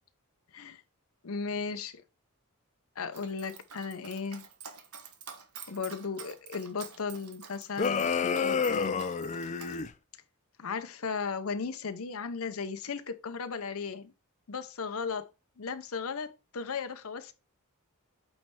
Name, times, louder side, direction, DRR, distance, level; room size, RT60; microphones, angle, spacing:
voice 1, 1.2-2.0 3.0-4.5 5.7-9.0 10.6-14.1 14.5-15.3 15.6-17.3, left 5 dB, 65° left, 0.7 m, -36 dB
Dog, 3.1-9.8, right 6 dB, 75° right, 1.1 m, -48 dB
sound 1, 7.8-9.9, left 5 dB, 30° left, 0.4 m, -29 dB
8.6 x 3.3 x 4.4 m
head